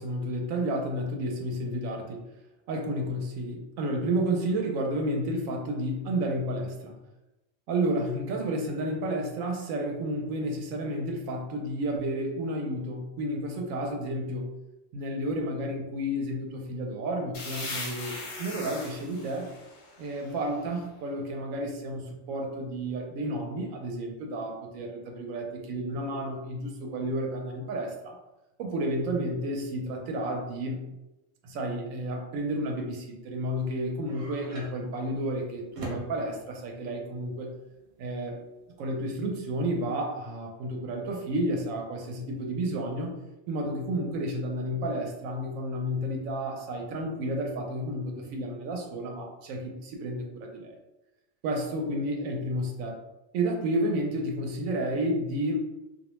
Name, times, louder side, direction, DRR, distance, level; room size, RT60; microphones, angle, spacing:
voice 1, 0.0-2.2 2.7-6.9 7.7-14.5 14.9-19.5 20.0-28.2 28.6-30.8 31.4-37.5 38.0-38.4 38.8-43.1 43.5-50.7 51.4-53.0 53.3-55.6, right 1 dB, 90° right, 2 dB, 1.0 m, -31 dB
sound 1, 17.3-21.0, left 2 dB, 50° left, 0.6 m, -40 dB
sound 2, 33.6-39.2, right 2 dB, 65° right, 0.9 m, -44 dB
2.3 x 2.1 x 2.9 m, 0.98 s
omnidirectional pair, 1.3 m